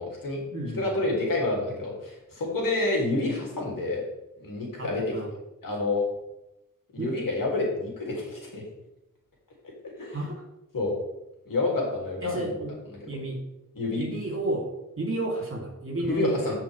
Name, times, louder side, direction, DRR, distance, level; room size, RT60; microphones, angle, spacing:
voice 1, 0.0-0.4 0.7-4.0 4.4-5.2 5.6-6.0 6.9-8.6 9.6-9.7 10.0-10.2 10.7-10.9 11.4-12.5 13.0-13.1 13.7-14.0 16.0-16.5, left 2 dB, 90° left, -2 dB, 3.2 m, -28 dB
voice 2, 0.5-1.0 4.8-5.3 7.0-7.2 10.1-10.3 12.2-12.7 13.1-13.4 14.0-14.7 15.0-16.5, right 1 dB, 40° right, -2 dB, 3.6 m, -32 dB
15.5 x 5.3 x 3.6 m, 0.93 s
wide cardioid pair, 90°, 32 cm